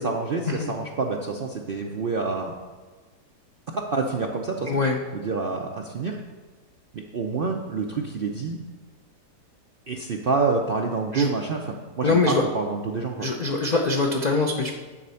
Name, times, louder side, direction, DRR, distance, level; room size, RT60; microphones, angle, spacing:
voice 1, 0.0-2.5 3.7-4.7 5.1-6.2 6.9-8.6 9.9-11.7 12.0-13.3, right 4 dB, 65° right, 1 dB, 0.5 m, -27 dB
voice 2, 4.7-5.0 11.1-11.3 12.0-12.4 13.2-14.7, left 3 dB, 75° left, 1 dB, 0.4 m, -23 dB
9.9 x 4.2 x 6.9 m, 1.4 s
omnidirectional pair, 1.7 m